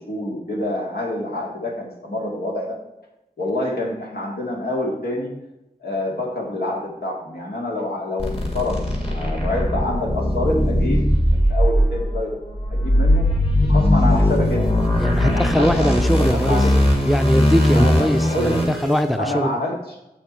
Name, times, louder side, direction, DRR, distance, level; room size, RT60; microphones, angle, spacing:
voice 1, 0.0-2.8 3.4-5.3 5.8-8.8 9.0-11.0 11.3-12.4 12.7-13.3 13.7-14.7 15.2-16.7 17.7-18.7 19.2-20.0, left 1 dB, 85° left, -2 dB, 2.3 m, -27 dB
sound 1, 8.2-19.0, left 1 dB, 40° left, 2.4 m, -19 dB
voice 2, 15.0-16.6 17.1-19.5, equal, ahead, 9 dB, 0.5 m, -21 dB
7.8 x 6.9 x 4.4 m, 0.94 s
wide cardioid pair, 55°, 16 cm